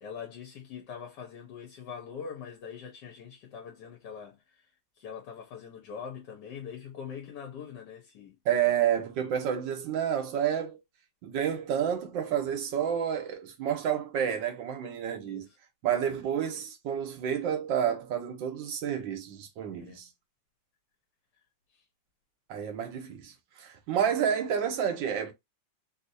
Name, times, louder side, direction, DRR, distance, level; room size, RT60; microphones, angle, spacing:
voice 1, 0.0-4.7 5.0-8.4 15.2-15.6 19.8-20.0 21.7-21.8, left 7 dB, 70° left, 1.4 m, -43 dB
voice 2, 8.4-10.8 11.2-15.5 15.8-20.1 22.5-25.3, right 9 dB, 85° right, 1.5 m, -30 dB
3.4 x 2.8 x 2.6 m
omnidirectional pair, 2.0 m